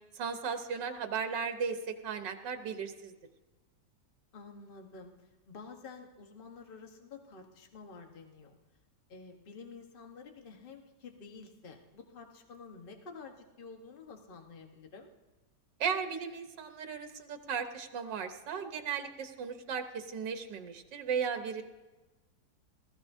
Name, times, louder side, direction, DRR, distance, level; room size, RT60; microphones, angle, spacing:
voice 1, 0.1-3.1 15.8-21.6, right 6 dB, 90° right, 7 dB, 1.7 m, -36 dB
voice 2, 4.3-8.6 9.1-15.1, left 4 dB, 35° left, 4 dB, 1.3 m, -50 dB
19.5 x 14.0 x 2.7 m, 1.2 s
omnidirectional pair, 1.9 m